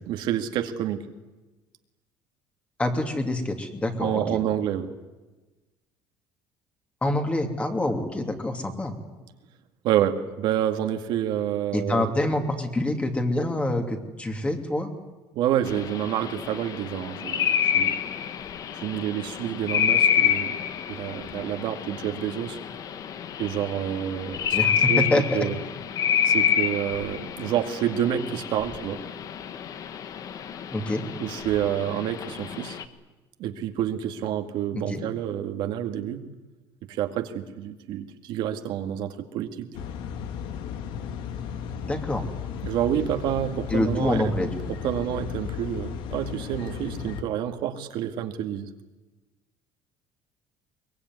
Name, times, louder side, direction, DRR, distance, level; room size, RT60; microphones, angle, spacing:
voice 1, 0.1-1.1 4.0-4.9 9.8-12.1 15.3-18.0 18.8-20.6 20.9-22.6 23.4-24.6 24.9-25.1 25.3-25.6 26.2-29.0 31.2-32.8 33.4-36.2 36.9-39.7 42.6-44.5 44.8-48.7, right 10 dB, 65° right, 6 dB, 2.2 m, -28 dB
voice 2, 2.8-4.4 7.0-8.9 11.7-14.9 24.5-25.4 30.7-31.0 34.7-35.0 41.8-42.3 43.7-44.7, left 1 dB, 15° left, 5 dB, 2.8 m, -26 dB
sound 1, 15.7-32.8, left 8 dB, 45° left, 1.5 m, -28 dB
sound 2, 39.7-47.2, left 8 dB, 75° left, 2.1 m, -35 dB
23.0 x 21.5 x 9.6 m, 1.2 s
cardioid pair, 145°, 8 cm